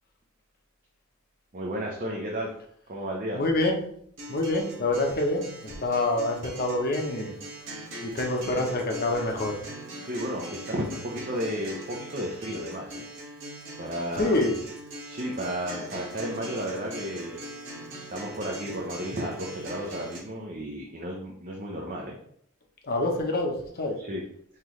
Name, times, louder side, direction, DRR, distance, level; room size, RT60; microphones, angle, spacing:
voice 1, 1.5-2.5 2.9-3.4 7.8-7.9 8.6-8.7 10.0-13.0 13.8-14.4 15.0-17.4 18.1-22.2 24.0-24.2, equal, 40° right, -1 dB, 0.6 m, -33 dB
voice 2, 3.3-3.8 4.3-7.3 8.0-9.6 14.2-14.5 22.8-23.9, left 2 dB, 45° left, 2 dB, 0.8 m, -26 dB
Acoustic guitar, 4.2-20.2, right 1 dB, 60° right, 1.3 m, -41 dB
5.7 x 3.0 x 3.1 m, 0.67 s
head